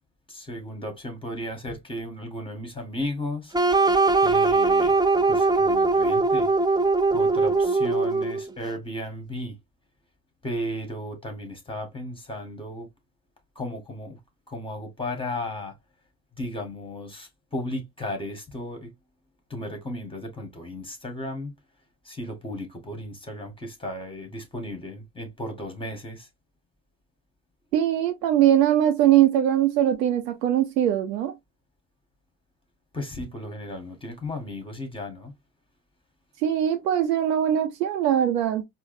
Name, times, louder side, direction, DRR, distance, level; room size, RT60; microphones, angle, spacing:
voice 1, 0.3-3.5 4.2-5.0 5.3-6.5 7.1-9.6 10.4-12.9 13.5-14.2 14.5-15.7 16.4-18.9 19.5-21.5 22.0-26.3 32.9-35.3, left 1 dB, 10° left, 1.8 m, -35 dB
sound 1, 3.5-8.5, right 3 dB, 10° right, 0.5 m, -21 dB
voice 2, 27.7-31.4 36.4-38.6, right 11 dB, 80° right, 0.6 m, -21 dB
4.5 x 2.0 x 2.7 m
hypercardioid pair, 55°, 48 cm